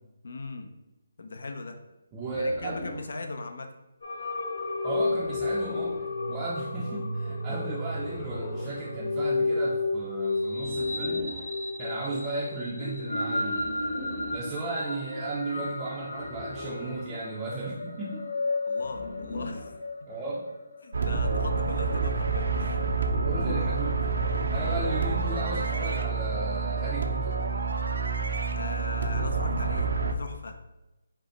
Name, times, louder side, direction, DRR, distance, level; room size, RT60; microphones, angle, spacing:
voice 1, 0.2-0.7 1.2-1.8 2.4-3.7 18.7-19.7 20.0-20.1 20.8-22.8 28.5-30.6, left 3 dB, 70° left, 5 dB, 0.6 m, -39 dB
voice 2, 2.1-2.9 4.8-6.0 6.3-11.2 11.8-13.6 14.3-18.4 20.1-20.5 23.2-24.0 24.5-27.4, right 2 dB, 15° right, -7 dB, 0.5 m, -34 dB
sound 1, 2.2-3.2 5.1-6.1 7.9-8.9 10.5-11.5 13.5-14.5 16.1-17.2 18.8-19.8, left 1 dB, 30° left, 0.6 m, -40 dB
sound 2, 4.0-23.5, left 2 dB, 85° left, 0.9 m, -33 dB
sound 3, 20.9-30.1, right 4 dB, 70° right, 0.5 m, -28 dB
5.2 x 2.0 x 4.4 m, 0.99 s
hypercardioid pair, 165°, 0 cm